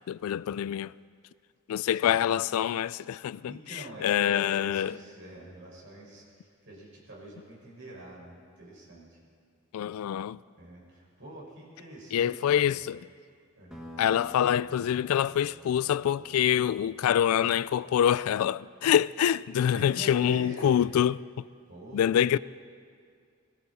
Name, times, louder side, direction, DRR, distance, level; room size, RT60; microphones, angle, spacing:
voice 1, 0.1-0.9 1.7-3.5 4.0-4.9 9.7-10.4 12.1-13.0 14.0-21.5 21.9-22.4, left 9 dB, 80° left, 0.3 m, -25 dB
voice 2, 1.9-2.2 3.5-9.2 10.6-12.8 13.6-13.9 19.5-20.7 21.7-22.2, right 2 dB, 60° right, 5.5 m, -45 dB
sound 1, 13.7-18.8, equal, 5° right, 1.8 m, -51 dB
21.0 x 16.0 x 4.2 m
head